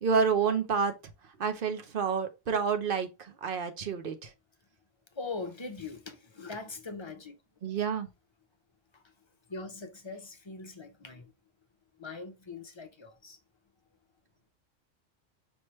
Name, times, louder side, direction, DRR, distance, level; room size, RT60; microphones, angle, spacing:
voice 1, 0.0-0.9 1.4-3.1 3.4-4.3 7.6-8.1, right 5 dB, 50° right, 0.9 m, -28 dB
voice 2, 5.1-7.4 8.9-9.0 9.5-11.3 12.0-13.4, left 3 dB, 30° left, 0.6 m, -41 dB
5.3 x 3.1 x 3.0 m
omnidirectional pair, 1.2 m